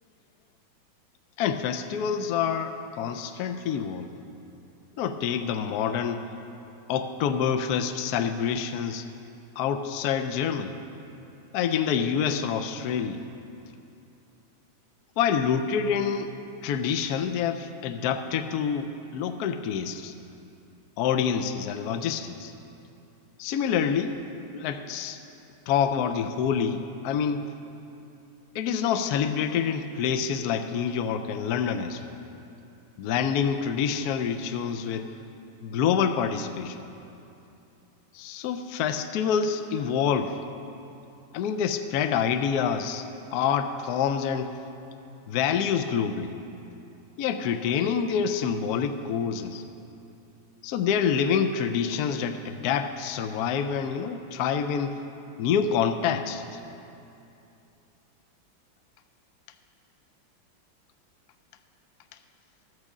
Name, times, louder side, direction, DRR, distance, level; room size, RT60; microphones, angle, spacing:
voice 1, 1.4-4.1 5.0-6.3 6.9-9.1 9.6-10.7 11.5-13.2 15.2-16.4 16.6-20.1 21.0-22.5 23.4-24.2 24.5-25.2 25.7-27.4 28.5-32.0 33.0-35.1 35.6-36.8 38.1-40.4 41.3-43.0 43.3-44.5 45.3-46.3 47.2-49.6 50.6-55.0 55.4-56.6, left 7 dB, 75° left, 8 dB, 0.9 m, -27 dB
13.0 x 6.3 x 7.3 m, 2.8 s
omnidirectional pair, 2.1 m